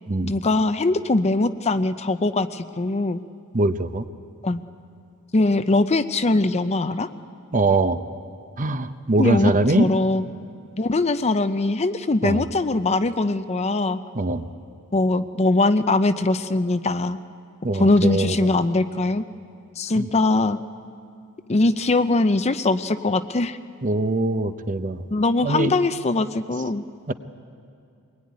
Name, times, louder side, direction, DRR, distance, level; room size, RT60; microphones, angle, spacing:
voice 1, 0.2-3.2 4.4-4.6 5.3-7.1 9.2-10.3 10.8-14.0 14.9-17.2 17.7-19.2 19.8-20.6 21.5-23.6 25.1-26.8, left 2 dB, 30° left, 11 dB, 0.6 m, -21 dB
voice 2, 3.5-4.0 7.5-8.0 8.6-9.9 12.2-12.5 14.1-14.4 17.6-18.5 20.0-20.1 23.8-25.0 25.4-25.7 27.1-27.2, right 2 dB, 35° right, 10 dB, 0.8 m, -22 dB
23.0 x 21.0 x 9.6 m, 2.4 s
head